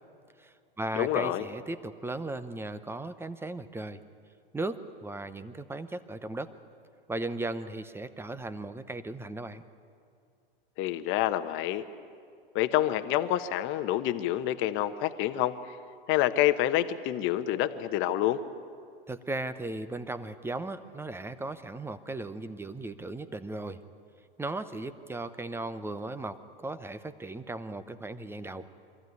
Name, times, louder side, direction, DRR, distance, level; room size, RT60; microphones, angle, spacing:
voice 1, 0.4-4.0 4.5-6.5 7.1-9.6 19.1-23.8 24.4-28.7, right 2 dB, 10° right, 12 dB, 0.8 m, -37 dB
voice 2, 0.9-1.5 10.8-11.9 12.5-15.8 16.1-18.4, left 13 dB, 40° left, 10 dB, 1.1 m, -27 dB
23.0 x 14.5 x 9.5 m, 2.4 s
hypercardioid pair, 100°, 30 cm